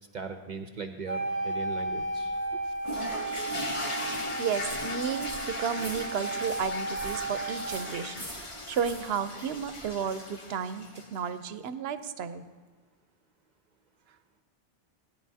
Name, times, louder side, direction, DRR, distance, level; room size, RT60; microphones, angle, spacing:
voice 1, 0.1-2.3, right 5 dB, 50° right, 6 dB, 0.7 m, -39 dB
Wind instrument woodwind instrument, 1.1-8.0, right 2 dB, 85° left, 1.7 m, -34 dB
sound 1, 1.8-10.0, equal, 20° left, 3.5 m, -47 dB
sound 2, 2.8-11.3, left 2 dB, 35° left, 0.8 m, -38 dB
voice 2, 4.4-12.4, right 7 dB, 85° right, 11 dB, 0.9 m, -33 dB
16.0 x 9.9 x 2.7 m, 1.5 s
omnidirectional pair, 1.0 m